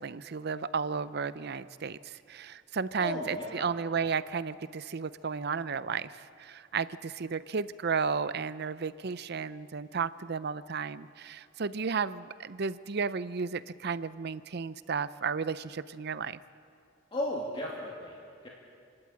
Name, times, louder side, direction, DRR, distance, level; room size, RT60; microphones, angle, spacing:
voice 1, 0.0-16.4, right 5 dB, 55° right, 15 dB, 0.6 m, -33 dB
voice 2, 3.0-3.7 17.1-18.2 18.4-18.5, left 1 dB, 30° left, -4 dB, 2.5 m, -35 dB
28.5 x 12.0 x 8.7 m, 2.5 s
head